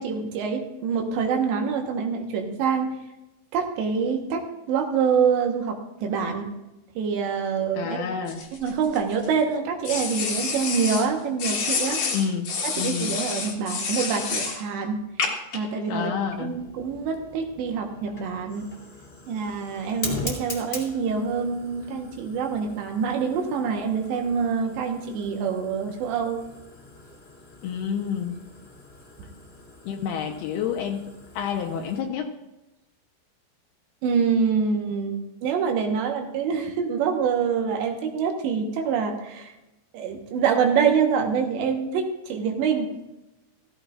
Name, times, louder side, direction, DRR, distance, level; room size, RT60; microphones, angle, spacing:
voice 1, 0.0-2.9 3.5-6.5 7.0-8.0 8.5-12.0 12.6-15.0 15.5-16.1 16.4-18.7 19.3-26.4 29.2-29.3 34.0-39.5 39.9-43.0, right 6 dB, 75° right, 3 dB, 3.4 m, -26 dB
voice 2, 7.8-8.4 12.1-12.5 12.8-13.1 15.9-16.5 27.6-28.4 29.9-32.3, left 7 dB, 75° left, 4 dB, 2.6 m, -29 dB
sound 1, 8.3-9.3 9.8-11.1 11.4-14.6 15.2-15.6, left 5 dB, 55° left, 1.9 m, -28 dB
Fire, 16.3-32.0, left 2 dB, 20° left, 1.5 m, -41 dB
16.0 x 14.5 x 2.4 m, 0.97 s
omnidirectional pair, 5.2 m